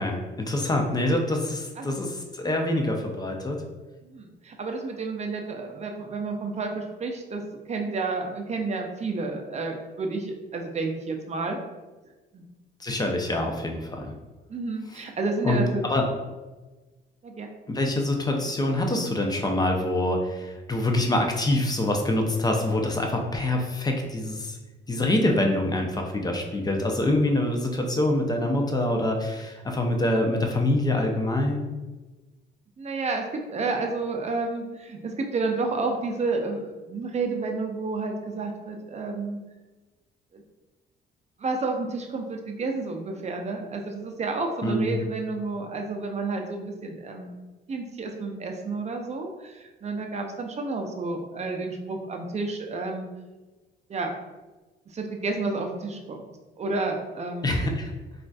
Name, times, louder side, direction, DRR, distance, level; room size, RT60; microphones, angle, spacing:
voice 1, 0.0-3.6 12.8-14.1 15.4-16.0 17.7-24.6 24.9-31.7 44.6-45.0 57.4-57.9, left 1 dB, 20° left, 2 dB, 0.5 m, -25 dB
voice 2, 4.0-11.6 12.3-12.5 14.5-15.8 17.2-17.5 32.8-39.4 40.3-40.4 41.4-47.3 47.7-53.1 53.9-54.1 54.9-56.2 56.6-57.6, right 3 dB, 35° right, 3 dB, 0.5 m, -30 dB
3.8 x 2.4 x 2.3 m, 1.2 s
cardioid pair, 90°, 20 cm